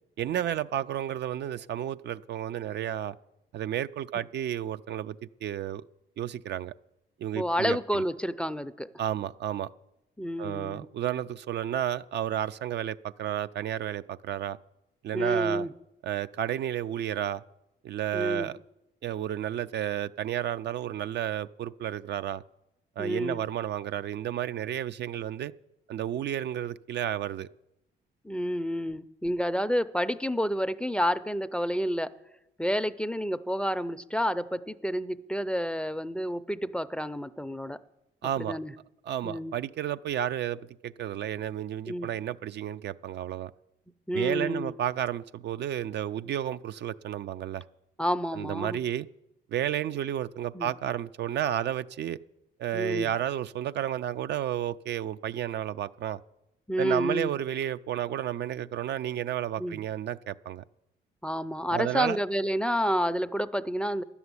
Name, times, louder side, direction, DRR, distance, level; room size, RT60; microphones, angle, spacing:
voice 1, 0.2-3.2 3.5-5.8 6.2-6.7 7.2-8.0 9.0-9.7 10.4-14.6 15.0-15.7 16.0-17.4 17.8-18.6 19.0-22.4 23.0-25.5 25.9-27.5 38.2-38.6 39.1-43.5 44.1-47.6 48.3-49.1 49.5-52.2 52.6-56.2 56.8-60.6 61.7-62.2, right 11 dB, 60° right, 0.4 m, -32 dB
voice 2, 7.3-8.9 10.2-10.9 15.1-15.7 18.1-18.5 23.0-23.4 28.2-32.1 32.6-37.8 38.4-38.7 39.2-39.5 41.9-42.1 44.1-44.7 48.0-48.8 50.5-50.7 52.7-53.1 56.7-57.3 59.6-59.8 61.2-64.0, equal, 5° left, 0.4 m, -29 dB
11.0 x 7.0 x 9.6 m
cardioid pair, 90°, 20 cm